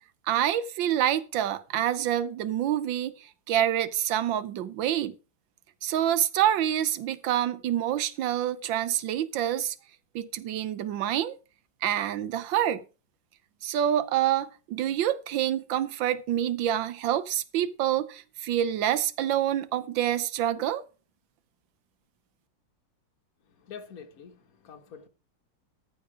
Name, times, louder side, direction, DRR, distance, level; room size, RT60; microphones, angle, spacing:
voice 1, 0.3-3.1 3.5-5.1 5.8-9.7 10.1-11.4 11.8-12.8 13.6-20.8, right 11 dB, 80° right, 1.5 m, -27 dB
voice 2, 23.4-25.1, left 6 dB, 50° left, 1.7 m, -46 dB
14.0 x 5.9 x 4.9 m
omnidirectional pair, 2.0 m